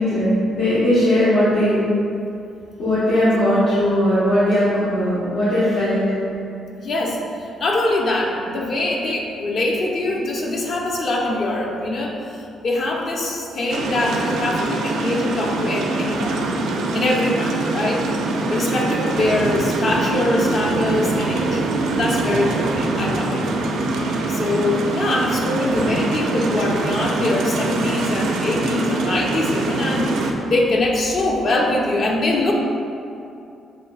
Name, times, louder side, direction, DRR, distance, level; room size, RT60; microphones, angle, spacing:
voice 1, 0.0-1.8 2.8-6.0 16.9-17.2, left 1 dB, 90° left, -13 dB, 1.1 m, -18 dB
voice 2, 6.8-16.4 16.9-18.1 18.5-21.6 21.9-23.4 24.3-32.5, left 2 dB, 55° left, -1 dB, 0.7 m, -23 dB
sound 1, 13.7-30.3, right 2 dB, 80° right, 0.4 m, -23 dB
7.2 x 2.6 x 2.3 m, 2.6 s
cardioid pair, 90°, 0 cm